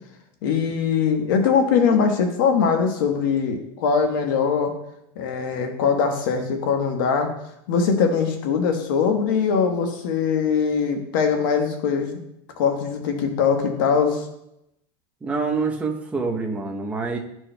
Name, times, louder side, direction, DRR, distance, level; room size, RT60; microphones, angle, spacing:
voice 1, 0.4-4.7 5.2-7.3 7.7-12.2 12.6-14.2, left 6 dB, 85° left, 4 dB, 1.1 m, -21 dB
voice 2, 15.2-17.2, right 4 dB, 10° right, 1 dB, 0.7 m, -26 dB
11.5 x 4.6 x 2.2 m, 0.82 s
supercardioid pair, 145°, 11 cm